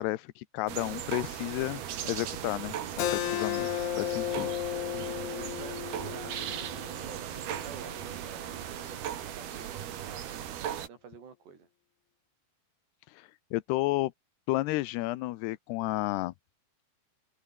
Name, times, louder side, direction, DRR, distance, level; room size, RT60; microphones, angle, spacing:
voice 1, 0.0-3.7 4.0-4.5 13.1-14.1 14.5-16.3, left 18 dB, 90° left, 2.8 m, -32 dB
sound 1, 0.7-10.9, right 10 dB, 70° right, 4.0 m, -38 dB
Keyboard (musical), 3.0-8.2, left 14 dB, 75° left, 1.8 m, -34 dB
sound 2, 3.6-9.1, right 5 dB, 35° right, 2.8 m, -54 dB
voice 2, 5.0-6.7 7.0-11.7, right 6 dB, 85° right, 7.1 m, -49 dB
omnidirectional pair, 4.7 m